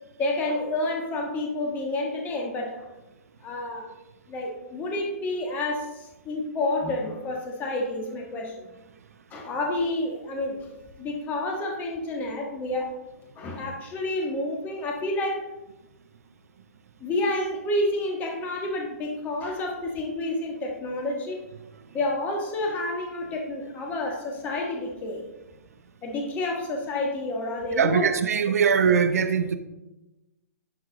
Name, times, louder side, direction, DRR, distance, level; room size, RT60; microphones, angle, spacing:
voice 1, 0.2-2.9 3.4-3.9 4.3-8.7 9.3-10.7 11.0-13.0 13.3-15.5 17.0-21.4 21.9-25.3 26.0-28.1, left 2 dB, 20° left, 1.5 m, -29 dB
voice 2, 27.8-29.6, right 6 dB, 75° right, 0.8 m, -21 dB
11.5 x 4.7 x 4.0 m
hypercardioid pair, 130°, 8 cm